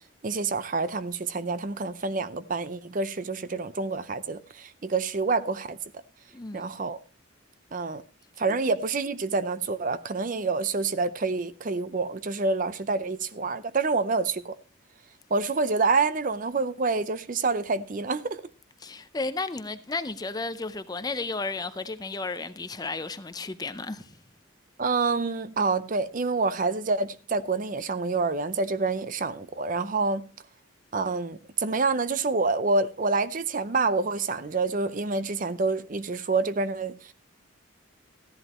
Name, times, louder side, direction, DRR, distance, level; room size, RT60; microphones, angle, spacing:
voice 1, 0.2-5.8 6.5-7.0 7.7-8.0 8.4-14.5 15.3-18.4 24.8-30.3 30.9-37.1, right 3 dB, 40° right, 0.5 m, -27 dB
voice 2, 6.3-6.7 18.8-24.2, left 3 dB, 20° left, 0.5 m, -33 dB
15.0 x 11.0 x 2.9 m
head